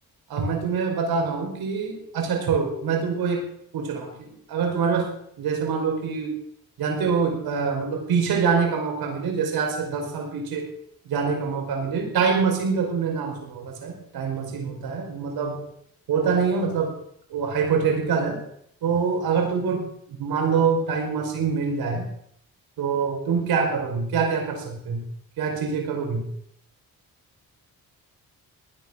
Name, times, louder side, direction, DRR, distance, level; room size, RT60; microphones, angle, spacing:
voice 1, 0.3-3.5 3.7-5.1 5.4-6.3 6.8-10.7 11.0-15.6 16.1-17.0 17.3-18.4 18.8-22.1 22.8-25.0 25.4-26.3, right 5 dB, 90° right, 2 dB, 5.1 m, -25 dB
19.5 x 10.5 x 6.4 m, 0.70 s
cardioid pair, 85°, 36 cm